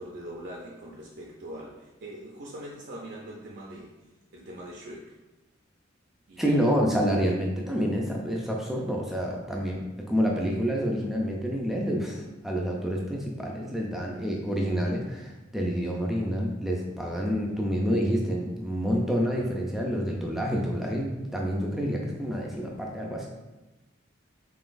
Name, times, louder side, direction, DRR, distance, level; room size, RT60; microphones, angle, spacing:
voice 1, 0.0-3.9 4.3-5.1 6.3-6.7, right 1 dB, 60° right, -3 dB, 0.5 m, -42 dB
voice 2, 6.4-23.3, equal, ahead, -2 dB, 0.4 m, -28 dB
3.8 x 3.8 x 2.5 m, 1.1 s
head